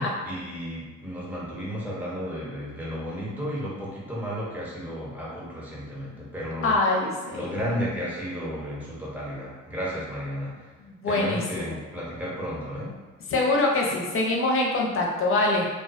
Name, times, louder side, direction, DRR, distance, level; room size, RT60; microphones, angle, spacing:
voice 1, 0.0-6.8 7.3-10.7 11.0-12.9, equal, 5° right, -7 dB, 0.8 m, -33 dB
voice 2, 6.6-7.6 10.8-11.4 11.7-11.8 13.3-15.7, left 2 dB, 45° left, -2 dB, 0.6 m, -24 dB
2.3 x 2.1 x 2.5 m, 1.3 s
cardioid pair, 90°, 30 cm